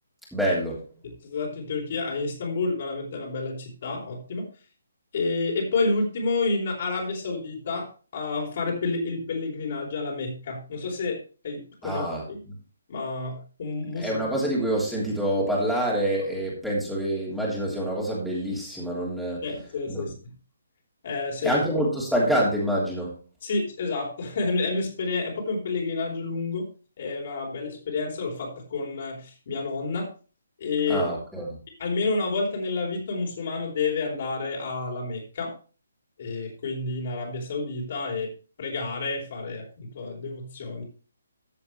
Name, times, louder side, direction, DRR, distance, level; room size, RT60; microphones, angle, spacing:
voice 1, 0.3-0.8 11.8-12.3 14.0-19.5 19.9-20.1 21.4-23.1 30.9-31.6, right 1 dB, ahead, -5 dB, 3.2 m, -26 dB
voice 2, 1.0-4.5 5.1-7.9 8.1-12.4 12.9-14.1 19.4-20.1 21.0-21.6 23.4-26.7 27.0-30.1 30.6-31.1 31.8-35.5 36.2-38.3 38.6-40.8, left 3 dB, 45° left, 0 dB, 4.1 m, -29 dB
14.0 x 7.7 x 3.2 m, 0.36 s
figure-of-eight pair, 140°, 0 cm